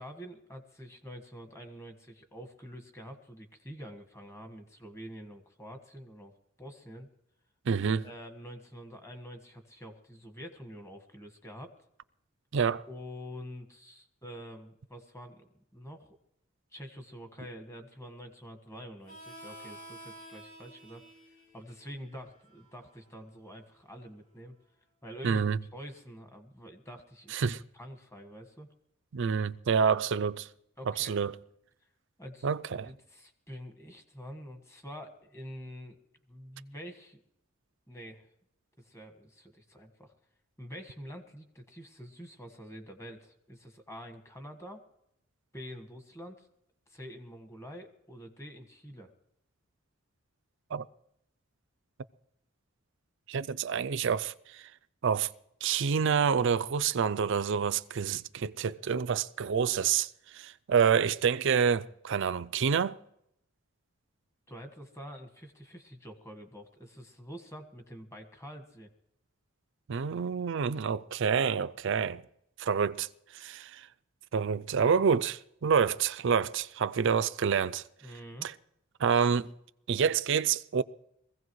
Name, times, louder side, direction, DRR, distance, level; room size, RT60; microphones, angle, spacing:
voice 1, 0.0-6.3 6.6-7.1 8.0-11.7 12.9-16.2 16.7-21.0 21.5-24.5 25.0-25.4 25.7-28.7 30.8-31.2 32.2-32.5 32.8-36.0 36.3-37.2 37.9-38.3 38.8-40.1 40.6-44.8 45.5-46.5 46.9-49.1 64.5-68.9 78.0-78.5, equal, 15° left, 1.5 m, -46 dB
voice 2, 7.7-8.1 12.5-12.9 25.2-25.6 27.3-27.6 29.1-30.5 31.0-31.4 32.4-32.9 50.7-50.8 53.3-54.6 55.0-55.3 55.6-63.0 69.9-72.2 72.6-73.1 73.3-73.9 74.3-77.8 78.4-78.5 79.0-79.5 79.9-80.8, right 6 dB, 60° right, 0.4 m, -28 dB
Harmonica, 19.0-24.3, right 1 dB, 40° left, 3.1 m, -52 dB
23.0 x 16.0 x 3.1 m
head